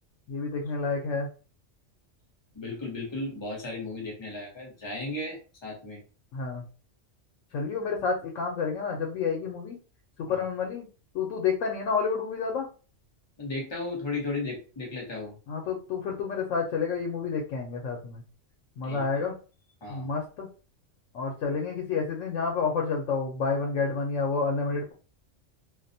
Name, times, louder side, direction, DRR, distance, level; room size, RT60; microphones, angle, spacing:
voice 1, 0.3-1.3 6.3-6.6 7.5-9.8 10.2-10.9 11.1-12.7 15.5-18.2 18.8-19.3 19.9-20.5 21.1-24.9, left 5 dB, 85° left, 1 dB, 0.9 m, -29 dB
voice 2, 2.5-6.0 10.3-10.4 13.4-15.3 18.8-19.2 19.8-20.1, left 2 dB, 25° left, -2 dB, 0.8 m, -35 dB
2.4 x 2.1 x 2.6 m, 0.37 s
omnidirectional pair, 1.3 m